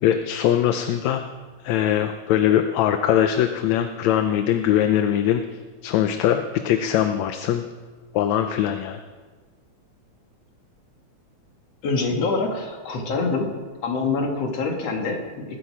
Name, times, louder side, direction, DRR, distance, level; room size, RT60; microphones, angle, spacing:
voice 1, 0.0-1.2 1.6-5.4 5.8-7.6 8.1-9.0, left 10 dB, 75° left, 7 dB, 1.9 m, -21 dB
voice 2, 11.8-13.5 13.8-15.6, left 3 dB, 55° left, 1 dB, 3.1 m, -25 dB
20.5 x 13.0 x 4.9 m, 1.4 s
omnidirectional pair, 3.5 m